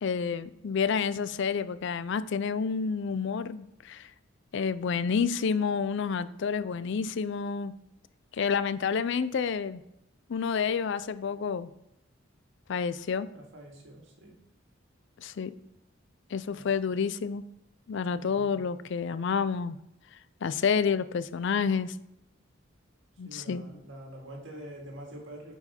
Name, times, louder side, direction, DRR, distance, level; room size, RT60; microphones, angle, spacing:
voice 1, 0.0-4.1 4.5-7.7 8.3-9.8 10.3-11.7 12.7-13.3 15.2-15.5 16.3-17.4 17.9-19.8 20.4-22.0 23.2-23.7, left 6 dB, 60° left, 14 dB, 0.4 m, -29 dB
voice 2, 13.3-14.4 16.5-16.6 18.2-18.5 23.2-25.5, right 1 dB, 65° right, 0 dB, 2.0 m, -45 dB
9.5 x 4.7 x 4.3 m, 0.85 s
head